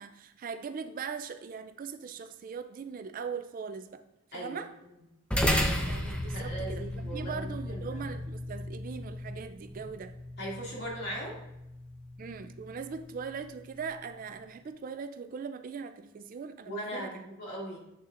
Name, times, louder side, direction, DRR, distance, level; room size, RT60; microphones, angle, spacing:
voice 1, 0.0-4.0 4.3-4.7 5.8-10.1 12.2-17.3, right 5 dB, 40° right, 10 dB, 0.3 m, -40 dB
sound 1, 5.3-14.0, equal, 5° left, 0.7 m, -35 dB
voice 2, 6.3-8.1 10.4-11.4 16.7-17.8, right 1 dB, 50° left, -4 dB, 2.3 m, -39 dB
8.2 x 6.7 x 2.5 m, 0.90 s
head